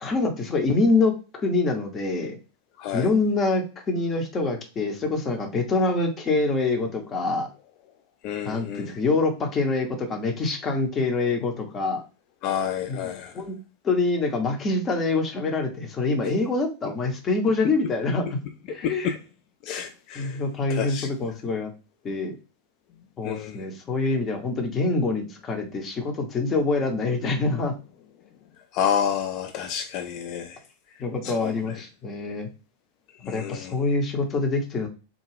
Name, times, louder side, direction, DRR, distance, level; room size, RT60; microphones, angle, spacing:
voice 1, 0.0-2.4 2.9-7.5 8.4-12.0 12.9-13.6 13.8-18.4 18.7-19.1 20.1-21.7 22.0-22.3 23.2-27.7 31.0-32.5 33.3-34.9, left 3 dB, 25° left, 0.8 m, -25 dB
voice 2, 2.8-3.1 8.2-8.9 12.4-13.3 18.8-19.2 19.7-20.4 20.7-21.1 23.2-23.6 28.7-30.6 31.2-31.5 33.2-33.7, left 8 dB, 40° left, 0.3 m, -29 dB
3.6 x 2.3 x 3.3 m
figure-of-eight pair, 90°, 0 cm